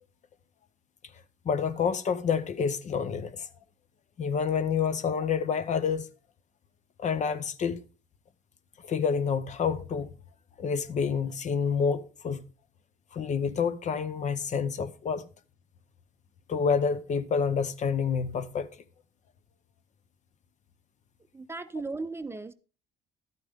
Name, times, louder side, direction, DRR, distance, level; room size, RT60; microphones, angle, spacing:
voice 1, 1.4-3.5 4.2-6.1 7.0-7.8 8.8-10.1 10.6-12.4 13.1-15.3 16.5-18.7, left 6 dB, 45° left, 0.8 m, -28 dB
voice 2, 21.3-22.5, right 3 dB, 15° right, 0.6 m, -36 dB
12.0 x 8.7 x 3.6 m
cardioid pair, 110°, 17 cm